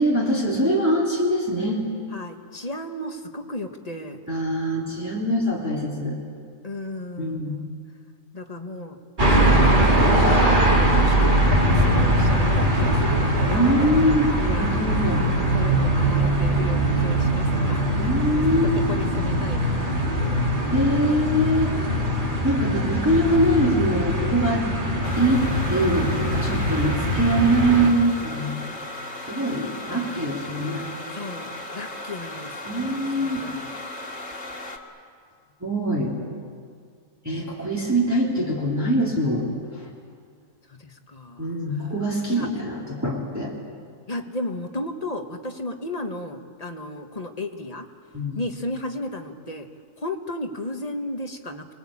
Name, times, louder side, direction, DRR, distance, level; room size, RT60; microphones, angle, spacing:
voice 1, 0.0-1.9 4.3-6.2 7.2-7.6 13.5-15.3 18.0-18.7 20.7-21.7 22.4-24.7 25.2-28.6 29.3-30.9 32.7-33.4 35.6-36.1 37.2-39.9 41.4-43.5 48.1-48.4, right 1 dB, 10° right, -5 dB, 3.4 m, -23 dB
voice 2, 2.1-4.2 6.6-7.7 8.3-9.0 9.2-9.5 9.8-13.6 14.4-17.9 18.7-19.9 20.2-21.1 29.9-30.2 31.1-33.7 40.7-41.5 42.4-42.5 44.1-47.9 48.3-49.7 50.0-51.8, left 2 dB, 25° left, 4 dB, 1.6 m, -34 dB
sound 1, 9.2-27.9, right 1 dB, 35° right, 2.8 m, -21 dB
sound 2, 25.0-34.8, left 1 dB, 50° left, 2.4 m, -36 dB
28.5 x 21.0 x 8.7 m, 2.2 s
omnidirectional pair, 1.5 m